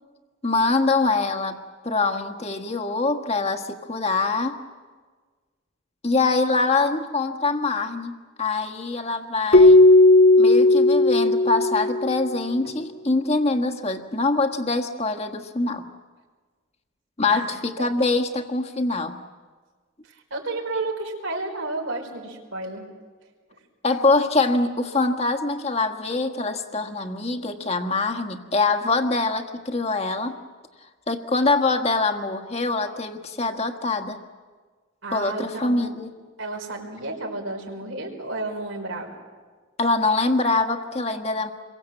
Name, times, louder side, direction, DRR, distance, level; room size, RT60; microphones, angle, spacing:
voice 1, 0.4-4.6 6.0-9.8 10.4-15.8 17.2-19.2 23.8-30.4 31.1-34.2 35.1-36.1 39.8-41.5, left 3 dB, 30° left, 6 dB, 1.5 m, -24 dB
Keyboard (musical), 9.5-12.4, left 2 dB, 55° left, 1.5 m, -15 dB
voice 2, 20.1-22.9 35.0-35.9 36.4-39.1, right 2 dB, 80° right, 1 dB, 5.2 m, -31 dB
28.0 x 23.0 x 7.8 m, 1.5 s
head